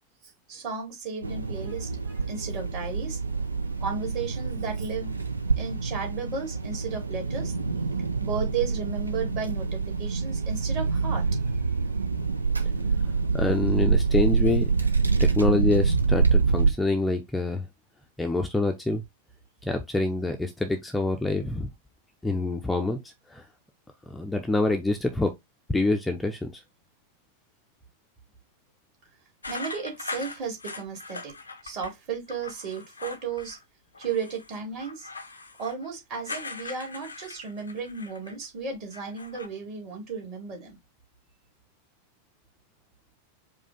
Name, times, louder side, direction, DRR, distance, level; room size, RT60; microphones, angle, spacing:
voice 1, 0.5-3.2 3.8-5.1 5.6-7.5 8.2-11.6 29.5-31.3 31.6-33.6 34.0-35.1 35.6-40.8, right 5 dB, 40° right, 2.4 m, -34 dB
sound 1, 1.2-16.7, right 4 dB, 80° right, 0.5 m, -26 dB
voice 2, 13.3-14.7 15.2-17.7 18.2-19.0 19.6-21.7 22.2-23.4 24.1-25.3 25.7-26.6, left 2 dB, 5° left, 0.6 m, -26 dB
sound 2, 29.4-31.9 32.3-33.6 33.9-38.4 38.7-39.5, left 3 dB, 80° left, 0.6 m, -40 dB
4.9 x 2.4 x 3.8 m
figure-of-eight pair, 90°, 0 cm